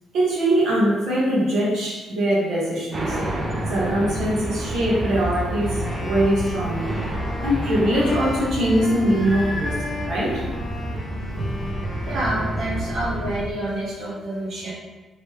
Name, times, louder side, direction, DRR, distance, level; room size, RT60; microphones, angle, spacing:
voice 1, 0.1-3.2 3.7-7.0 7.4-9.7 10.0-10.4, right 1 dB, 75° right, -6 dB, 1.2 m, -22 dB
sound 1, 2.9-13.4, right 1 dB, 30° right, 0.6 m, -29 dB
Wind instrument woodwind instrument, 5.7-13.4, left 3 dB, 35° left, 0.4 m, -36 dB
voice 2, 12.1-14.7, right 1 dB, 55° right, -8 dB, 0.9 m, -28 dB
3.1 x 3.1 x 3.1 m, 1.2 s
cardioid pair, 90°, 0 cm